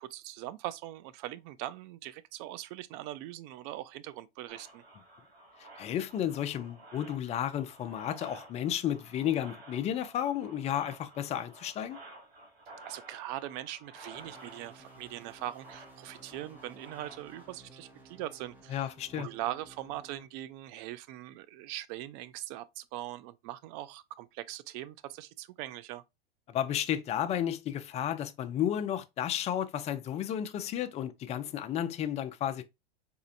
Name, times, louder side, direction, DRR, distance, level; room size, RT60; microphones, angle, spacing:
voice 1, 0.0-4.8 12.8-18.9 19.1-26.0, right 14 dB, 45° right, 0.4 m, -41 dB
sound 1, 4.5-17.5, right 2 dB, 80° right, 1.8 m, -53 dB
voice 2, 5.6-12.0 18.7-19.3 26.5-32.6, left 10 dB, 25° left, 0.4 m, -32 dB
sound 2, 14.1-20.3, right 2 dB, 5° right, 0.8 m, -56 dB
4.1 x 2.7 x 2.5 m
hypercardioid pair, 105°, 30 cm